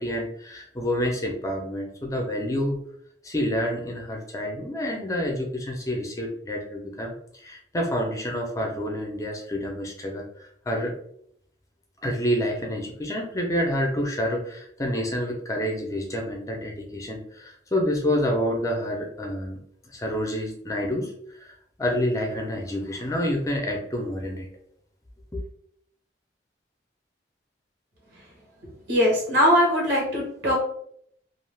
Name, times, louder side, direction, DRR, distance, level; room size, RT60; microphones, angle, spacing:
voice 1, 0.0-2.8 3.2-7.1 7.4-10.9 12.0-19.6 19.9-21.1 21.4-24.5 25.3-25.4, equal, 15° left, 0 dB, 0.5 m, -28 dB
voice 2, 28.9-30.6, equal, 80° right, -3 dB, 1.1 m, -21 dB
2.5 x 2.3 x 3.3 m, 0.68 s
head